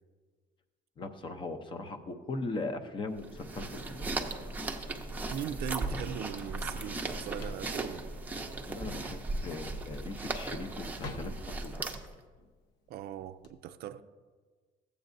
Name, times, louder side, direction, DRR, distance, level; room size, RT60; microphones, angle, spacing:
voice 1, 1.0-4.1 8.7-11.9, left 3 dB, 25° left, 0.7 m, -39 dB
sound 1, 3.2-12.2, right 2 dB, 10° right, 0.6 m, -37 dB
sound 2, 3.7-9.5, left 2 dB, 60° left, 1.4 m, -53 dB
Drawer open or close, 4.0-13.5, left 3 dB, 75° left, 0.8 m, -51 dB
voice 2, 5.3-8.1 12.9-14.0, right 10 dB, 60° right, 0.4 m, -39 dB
14.5 x 8.1 x 2.6 m
cardioid pair, 160°, 18 cm